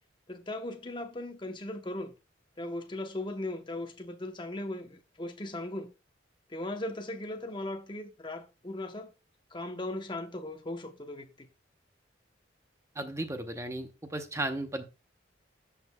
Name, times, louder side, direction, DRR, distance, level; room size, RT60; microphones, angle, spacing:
voice 1, 0.3-2.1 2.6-5.9 6.5-9.1 9.5-11.5, left 1 dB, 25° left, 0.8 m, -38 dB
voice 2, 13.0-14.8, right 1 dB, 15° right, 0.8 m, -35 dB
13.5 x 5.6 x 2.2 m
head